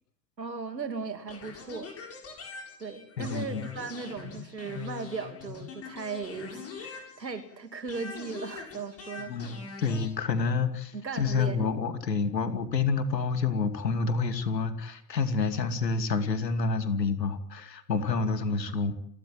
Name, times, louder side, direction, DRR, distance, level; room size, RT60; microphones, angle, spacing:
voice 1, 0.4-1.9 2.8-9.4 10.9-11.7, right 4 dB, 85° right, 8 dB, 2.9 m, -37 dB
sound 1, 1.3-7.5 7.9-10.1, left 6 dB, 30° left, 8.0 m, -43 dB
voice 2, 3.2-3.7 9.3-18.9, left 4 dB, 80° left, 10 dB, 2.7 m, -28 dB
30.0 x 13.5 x 9.3 m, 0.73 s
figure-of-eight pair, 85°, 49 cm